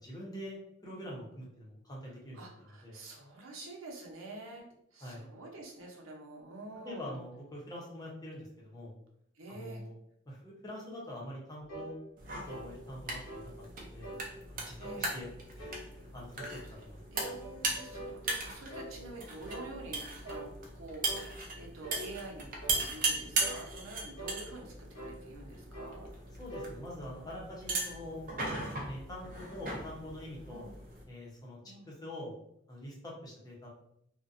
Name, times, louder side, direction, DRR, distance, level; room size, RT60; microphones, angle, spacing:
voice 1, 0.0-0.6 0.8-2.5 2.8-3.0 5.0-5.2 6.8-8.9 9.5-10.0 10.3-12.0 12.3-14.1 14.5-15.3 15.6-16.6 16.8-17.0 26.4-28.2 28.8-30.7 31.1-31.6 31.9-32.3 32.7-33.7, left 1 dB, 20° left, -4 dB, 0.7 m, -45 dB
voice 2, 2.3-7.1 9.4-9.8 14.8-15.2 16.7-16.8 17.1-26.1 30.5-30.7 31.6-31.9, right 2 dB, 90° right, 0 dB, 0.7 m, -47 dB
sound 1, 11.7-11.9 12.5-12.7 13.3-13.5 14.0-14.3 14.8-15.1 15.6-15.9 16.4-16.6 17.1-18.2 18.7-18.9 19.5-19.7 20.3-20.5 21.0-21.3 21.8-22.1 22.6-22.8 23.4-23.6 24.2-24.4 24.9-25.2 25.7-26.0 26.5-26.7, right 1 dB, 90° left, 1.1 m, -44 dB
sound 2, 12.2-31.0, right 3 dB, 40° right, 0.5 m, -38 dB
2.5 x 2.2 x 2.5 m, 0.74 s
head